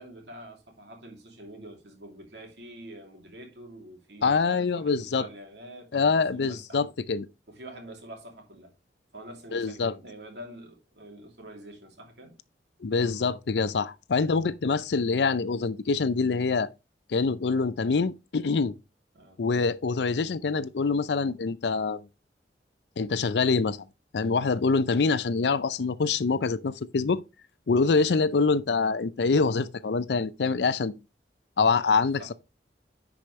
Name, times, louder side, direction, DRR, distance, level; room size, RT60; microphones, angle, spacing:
voice 1, 0.0-6.9 7.5-8.7 9.1-12.4 14.6-14.8 19.1-19.4 28.3-28.5 31.8-32.3, right 1 dB, 80° right, 2.6 m, -46 dB
voice 2, 4.2-5.2 5.9-7.3 9.5-9.9 12.8-16.7 17.1-18.7 19.4-22.0 23.0-23.8 24.1-27.2 27.7-31.0 31.6-32.3, left 4 dB, 80° left, 0.5 m, -25 dB
10.5 x 4.9 x 3.2 m
head